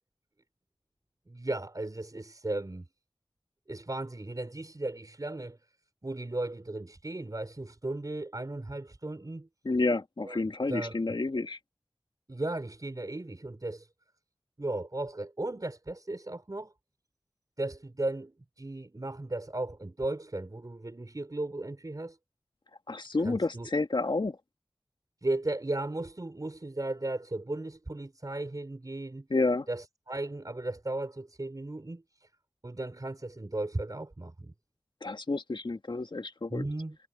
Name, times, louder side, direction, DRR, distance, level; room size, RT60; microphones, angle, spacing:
voice 1, 1.3-2.9 3.7-5.6 6.0-9.5 10.2-11.2 12.3-13.9 14.6-16.7 17.6-22.2 23.2-23.7 25.2-29.3 29.7-32.3 32.6-34.5 36.5-37.0, right 2 dB, 45° right, 4.7 m, -36 dB
voice 2, 9.6-11.6 22.9-24.4 29.3-29.7 35.0-36.6, left 3 dB, 65° left, 1.6 m, -30 dB
wide cardioid pair, 50°, 9 cm